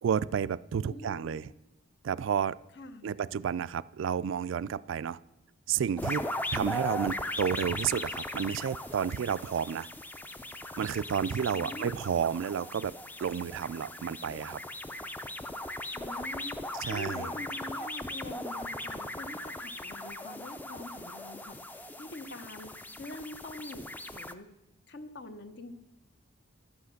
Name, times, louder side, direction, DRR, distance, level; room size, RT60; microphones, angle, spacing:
voice 1, 0.0-1.5 2.0-2.5 3.0-5.2 5.7-6.3 6.5-9.9 10.8-12.9 13.2-14.6 16.8-17.3, right 7 dB, 70° right, 17 dB, 0.3 m, -31 dB
voice 2, 0.8-1.4 2.7-3.3 11.4-11.9 15.9-24.5 24.9-25.7, left 2 dB, 55° left, 9 dB, 1.0 m, -45 dB
sound 1, 6.0-24.3, left 1 dB, 10° left, 0.4 m, -38 dB
12.0 x 8.1 x 6.4 m, 0.92 s
head